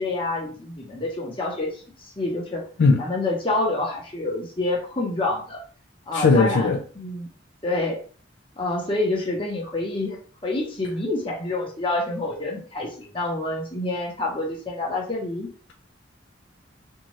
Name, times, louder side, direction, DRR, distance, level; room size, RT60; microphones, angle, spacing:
voice 1, 0.0-1.8 2.2-2.6 3.0-5.6 6.1-7.3 7.6-8.0 8.6-10.2 10.4-15.5, left 2 dB, 25° left, 0.9 m, -27 dB
voice 2, 6.1-6.8, left 4 dB, 60° left, 0.3 m, -18 dB
2.7 x 2.4 x 3.0 m
head